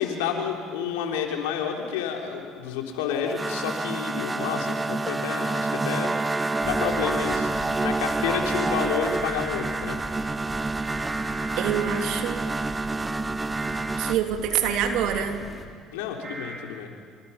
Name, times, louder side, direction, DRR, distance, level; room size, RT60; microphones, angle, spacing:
voice 1, 0.0-6.1 6.6-7.5 7.8-10.0 15.9-16.9, left 8 dB, 80° left, 1 dB, 3.6 m, -30 dB
sound 1, 3.1-14.2, right 3 dB, 20° right, 0.7 m, -28 dB
sound 2, 6.1-7.4 8.5-9.8 10.8-12.2 13.5-13.9 14.9-15.2 16.2-16.6, right 3 dB, 45° right, 6.3 m, -38 dB
sound 3, 6.6-15.6, left 2 dB, 15° left, 4.1 m, -41 dB
voice 2, 11.6-12.4 14.0-15.4, right 9 dB, 65° right, 4 dB, 2.9 m, -26 dB
28.0 x 25.5 x 5.8 m, 2.1 s
hypercardioid pair, 70°, 0 cm